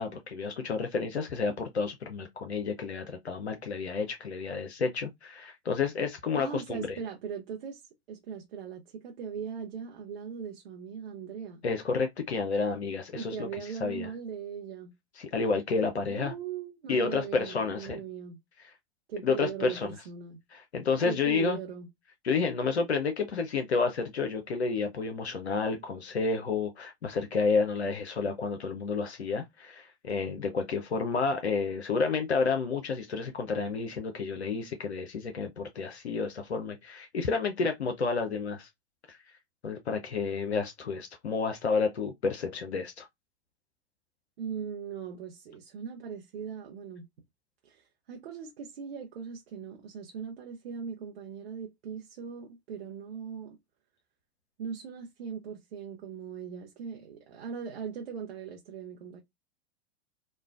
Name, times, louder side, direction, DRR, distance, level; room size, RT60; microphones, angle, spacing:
voice 1, 0.0-7.0 11.6-13.3 13.8-14.1 15.2-16.3 16.9-18.0 19.2-19.9 20.5-21.6 22.2-38.7 39.1-39.2 39.6-43.1, left 4 dB, 85° left, 0.6 m, -30 dB
voice 2, 6.3-7.8 8.1-11.6 13.2-14.9 16.1-18.4 19.1-20.4 21.0-21.9 44.4-47.1 47.6-53.6 54.6-59.2, right 7 dB, 65° right, 0.7 m, -39 dB
3.1 x 2.1 x 2.3 m
figure-of-eight pair, 95°, 32 cm